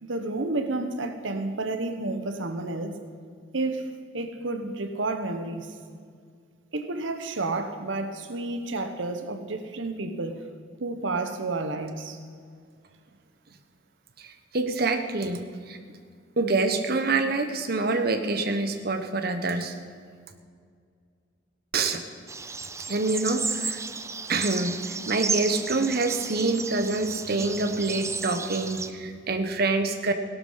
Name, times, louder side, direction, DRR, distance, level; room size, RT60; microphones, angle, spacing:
voice 1, 0.0-3.0 3.5-5.7 6.7-10.5 10.8-12.2, right 2 dB, 75° right, 8 dB, 1.1 m, -31 dB
voice 2, 14.2-15.8 16.4-19.7 21.7-22.0 22.9-23.8 24.3-30.1, right 3 dB, 50° right, 6 dB, 1.1 m, -26 dB
sound 1, 22.3-28.9, right 5 dB, 15° right, 0.6 m, -33 dB
17.0 x 12.0 x 5.7 m, 2.1 s
head